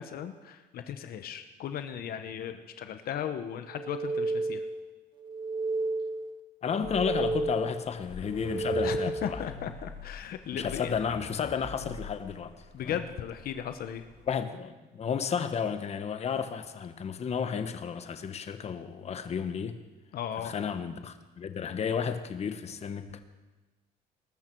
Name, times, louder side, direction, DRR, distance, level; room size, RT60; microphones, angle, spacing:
voice 1, 0.0-4.6 8.8-11.0 12.7-14.0 20.1-20.5, left 9 dB, 65° left, 8 dB, 1.0 m, -36 dB
sound 1, 3.7-4.8 5.2-6.3 6.7-7.8 8.3-9.4, right 3 dB, 25° right, 1.5 m, -32 dB
voice 2, 6.6-9.5 10.5-13.0 14.3-19.8 20.4-23.2, left 6 dB, 40° left, 9 dB, 1.1 m, -32 dB
sound 2, 6.8-14.3, left 5 dB, 90° left, 5.5 m, -45 dB
20.0 x 13.0 x 4.6 m, 1.2 s
cardioid pair, 110°, 17 cm